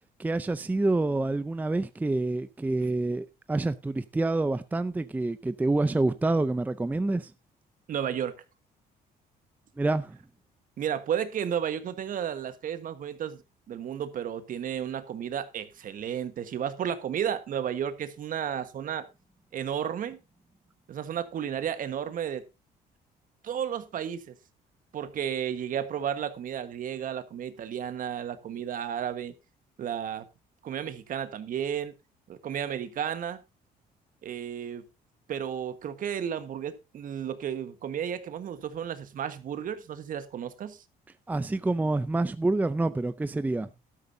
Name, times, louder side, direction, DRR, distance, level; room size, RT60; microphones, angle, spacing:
voice 1, 0.2-7.3 9.8-10.2 41.3-43.7, right 2 dB, 10° right, 0.5 m, -27 dB
voice 2, 7.9-8.3 10.8-13.4 13.7-19.1 19.5-20.2 20.9-22.4 23.4-24.3 24.9-29.3 29.8-30.2 30.6-31.9 32.3-33.4 34.2-34.9 35.3-40.8, right 9 dB, 55° right, 1.4 m, -33 dB
12.0 x 12.0 x 2.7 m
cardioid pair, 110°, 17 cm